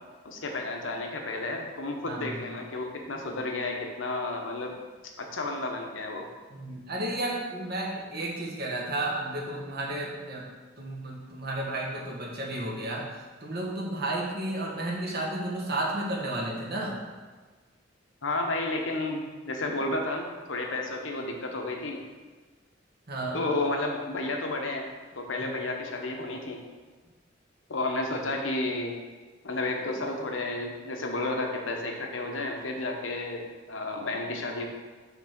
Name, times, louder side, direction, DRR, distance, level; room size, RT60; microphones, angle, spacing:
voice 1, 0.2-4.7 5.2-6.3 18.2-22.0 23.3-24.9 25.2-26.6 27.7-28.9 29.4-34.7, left 2 dB, 80° left, 2 dB, 1.0 m, -32 dB
voice 2, 2.1-2.5 6.5-10.4 10.8-13.1 13.4-17.0 23.1-23.4 25.4-25.5, right 1 dB, 55° right, -3 dB, 1.4 m, -32 dB
6.0 x 3.7 x 5.9 m, 1.4 s
head